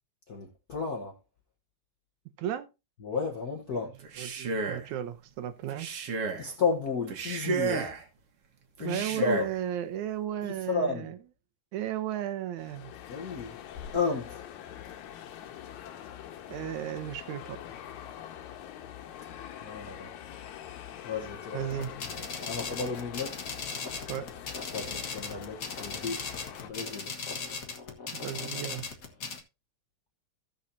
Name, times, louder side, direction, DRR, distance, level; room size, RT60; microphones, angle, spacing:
voice 1, 0.3-1.2 3.0-3.9 6.4-7.9 8.8-9.5 10.7-11.1 13.1-13.6 13.9-14.4 19.6-20.1 21.0-21.9 22.5-23.4 24.7-26.2 26.6-27.1, left 4 dB, 60° left, 1.0 m, -32 dB
Male speech man speaking, 4.0-4.9 5.7-6.5 7.1-8.0 8.8-9.6, right 4 dB, 60° right, 2.1 m, -32 dB
voice 2, 4.2-5.9 8.8-11.2 11.7-12.9 16.5-17.6 21.5-21.9 24.1-24.3 28.1-28.9, right 11 dB, 80° right, 2.3 m, -34 dB
sound 1, 12.6-26.7, left 10 dB, 85° left, 2.3 m, -44 dB
sound 2, 21.7-29.4, left 5 dB, 40° left, 1.2 m, -38 dB
16.5 x 6.5 x 2.7 m
omnidirectional pair, 3.3 m